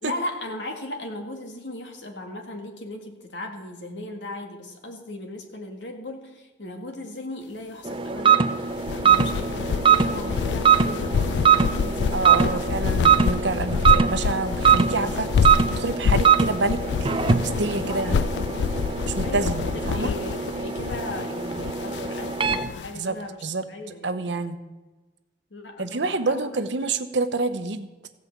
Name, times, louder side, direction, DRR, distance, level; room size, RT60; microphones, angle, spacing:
voice 1, 0.0-12.2 12.5-12.8 13.7-14.3 17.8-18.7 19.2-19.6 19.9-24.3 25.5-26.6, left 1 dB, 85° left, 4 dB, 1.8 m, -37 dB
sound 1, 7.8-22.7, right 7 dB, 30° right, 0.6 m, -22 dB
sound 2, 8.7-22.9, left 6 dB, 70° left, 0.3 m, -27 dB
voice 2, 12.1-16.8 17.3-18.3 19.1-20.1 22.9-23.2 23.4-23.6 24.0-24.6 25.8-27.9, right 3 dB, 80° right, 9 dB, 0.9 m, -27 dB
15.5 x 5.5 x 8.1 m, 1.2 s
head